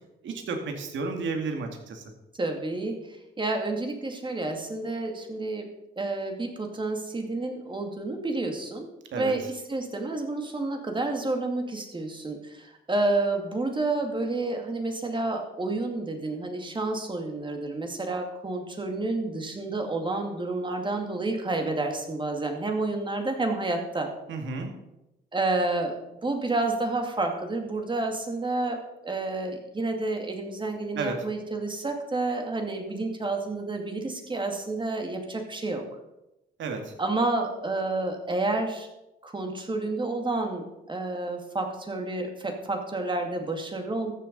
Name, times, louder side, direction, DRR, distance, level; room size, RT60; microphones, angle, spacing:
voice 1, 0.2-2.0 9.1-9.3 24.3-24.7 30.9-31.2 36.6-36.9, right 4 dB, 70° right, 4 dB, 2.3 m, -32 dB
voice 2, 2.4-5.7 6.0-8.9 9.1-24.1 25.3-26.0 26.2-35.8 37.0-38.9 39.2-44.1, right 2 dB, 25° right, 4 dB, 2.4 m, -30 dB
14.0 x 7.0 x 5.4 m, 0.93 s
cardioid pair, 90°, 20 cm